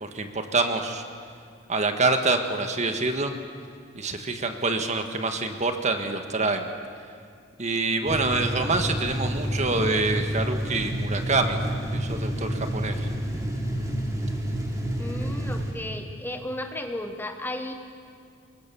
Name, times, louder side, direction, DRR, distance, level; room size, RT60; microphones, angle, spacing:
voice 1, 0.0-1.0 1.7-3.3 3.9-6.7 7.6-11.6 11.9-13.1, right 3 dB, 40° right, 6 dB, 1.6 m, -26 dB
sound 1, 8.0-15.7, equal, 15° right, 3.5 m, -29 dB
voice 2, 15.0-17.7, left 1 dB, 10° left, 6 dB, 1.2 m, -34 dB
25.5 x 22.0 x 7.1 m, 2.2 s
head